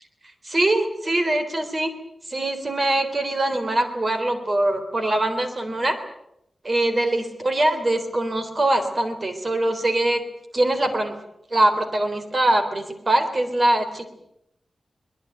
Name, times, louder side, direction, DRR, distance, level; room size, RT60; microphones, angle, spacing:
voice 1, 0.4-1.9 2.3-6.0 6.6-10.2 10.5-11.1 11.5-14.1, right 1 dB, 35° right, 8 dB, 3.7 m, -22 dB
23.0 x 20.5 x 9.1 m, 0.79 s
wide cardioid pair, 120°, 0 cm